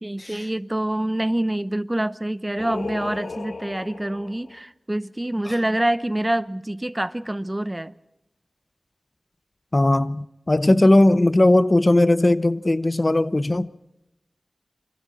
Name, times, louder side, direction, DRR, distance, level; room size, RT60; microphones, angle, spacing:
voice 1, 0.0-7.9, right 1 dB, 20° right, 0.9 m, -26 dB
Singing, 2.6-4.6, left 3 dB, 85° left, 1.4 m, -35 dB
voice 2, 9.7-13.7, left 1 dB, 35° left, 0.8 m, -18 dB
28.0 x 25.5 x 4.2 m
wide cardioid pair, 65°, 0 cm